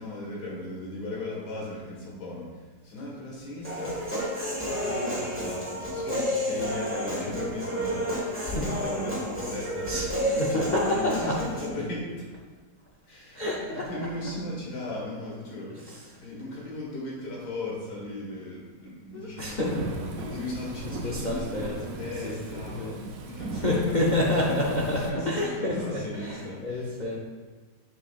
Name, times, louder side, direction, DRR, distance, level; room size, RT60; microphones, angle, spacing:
voice 1, 0.0-12.4 13.1-19.7 20.1-23.9 24.5-24.6 25.0-26.9, left 2 dB, 75° left, -4 dB, 2.2 m, -37 dB
Human voice, 3.6-11.7, equal, 10° right, 1.3 m, -31 dB
voice 2, 9.9-11.3 13.3-14.1 15.7-16.2 19.1-19.9 20.9-21.8 22.2-23.0 23.5-27.2, left 1 dB, 55° left, -3 dB, 0.5 m, -29 dB
Thunderstorm / Rain, 19.6-25.1, right 3 dB, 65° right, 1.0 m, -38 dB
6.8 x 6.1 x 2.4 m, 1.3 s
omnidirectional pair, 1.8 m